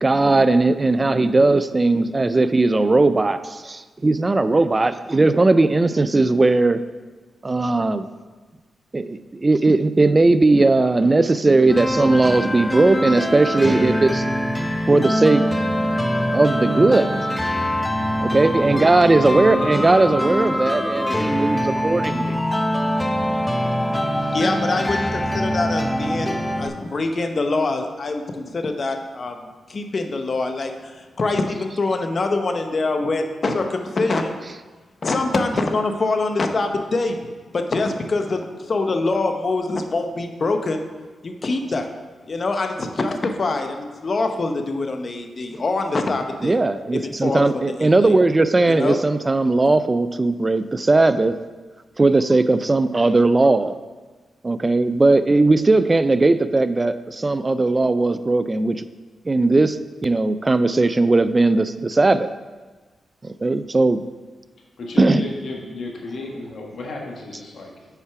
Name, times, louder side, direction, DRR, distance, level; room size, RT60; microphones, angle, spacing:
voice 1, 0.0-6.8 7.4-8.1 8.9-14.2 14.9-15.4 16.3-17.1 18.2-22.4 46.4-51.4 52.0-53.7 54.4-58.8 59.3-59.8 60.0-62.3 63.2-64.0 65.0-65.2, right 2 dB, 30° right, 12 dB, 0.4 m, -18 dB
sound 1, 11.7-26.7, equal, 10° left, 0.6 m, -23 dB
voice 2, 19.2-20.1 64.8-67.9, left 2 dB, 70° left, 0 dB, 1.4 m, -33 dB
voice 3, 24.1-29.4 29.7-34.3 35.0-37.2 37.5-40.9 41.2-41.8 42.3-46.6 47.2-48.1 48.7-49.0, left 3 dB, 50° left, 5 dB, 0.8 m, -24 dB
5.7 x 4.6 x 5.8 m, 1.3 s
cardioid pair, 55°, 0 cm